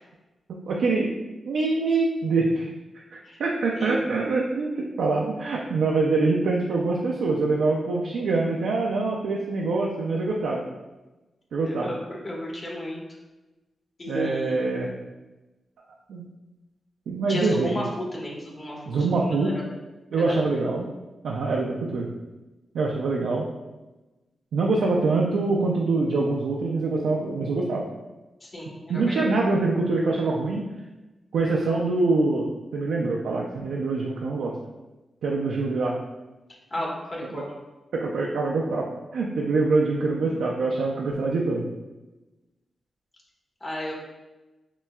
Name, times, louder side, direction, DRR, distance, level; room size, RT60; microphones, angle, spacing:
voice 1, 0.5-1.1 1.5-2.7 3.1-10.6 11.5-11.9 14.1-14.9 16.1-16.3 17.1-17.9 18.9-19.6 20.1-20.9 21.2-22.1 22.7-23.4 24.5-27.9 28.9-30.6 31.3-34.5 35.2-36.0 37.3-37.4 37.9-41.7, right 3 dB, 85° right, -2 dB, 0.3 m, -24 dB
voice 2, 11.6-13.0 14.0-14.8 17.3-19.5 20.1-20.2 20.6-20.7 28.4-29.4 36.7-37.5 43.6-43.9, left 1 dB, 45° left, -4 dB, 1.3 m, -34 dB
5.8 x 2.3 x 2.2 m, 1.1 s
cardioid pair, 50°, 0 cm